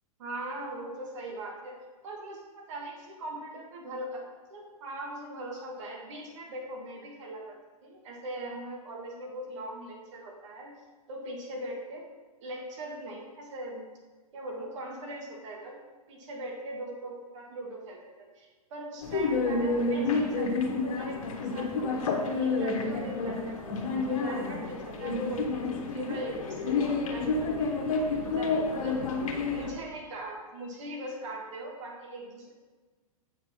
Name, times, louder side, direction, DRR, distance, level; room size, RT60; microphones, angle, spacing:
voice 1, 0.2-1.8 2.0-7.6 7.8-10.8 11.1-12.1 12.4-13.8 14.3-15.8 16.1-21.2 21.5-27.7 28.4-32.5, right 1 dB, 55° right, 0 dB, 1.8 m, -40 dB
sound 1, 19.0-29.7, left 3 dB, 65° left, 1.3 m, -29 dB
8.2 x 6.0 x 4.2 m, 1.3 s
figure-of-eight pair, 110°, 19 cm